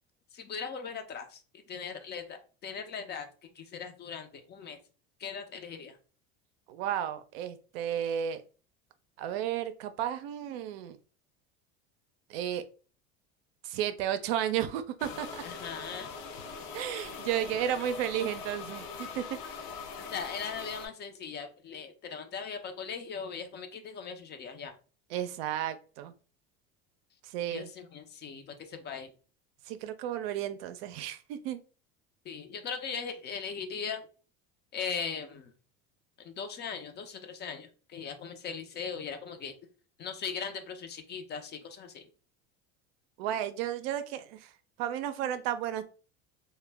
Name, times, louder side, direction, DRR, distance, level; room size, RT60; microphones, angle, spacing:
voice 1, 0.3-3.3 3.5-4.8 5.2-6.0 15.4-16.1 17.0-17.1 20.0-24.7 27.5-29.1 32.2-34.1 34.7-35.5 36.2-39.5 40.0-42.1, left 6 dB, 35° left, 7 dB, 0.5 m, -39 dB
voice 2, 6.7-8.4 9.2-11.0 12.3-12.6 13.6-15.4 16.7-19.4 25.1-26.1 27.2-27.7 29.7-31.6 43.2-44.5 44.8-45.9, right 10 dB, 80° right, 10 dB, 0.5 m, -33 dB
sound 1, 15.0-20.9, left 5 dB, 75° left, 0.6 m, -42 dB
2.1 x 2.0 x 3.3 m, 0.37 s
supercardioid pair, 100°, 30 cm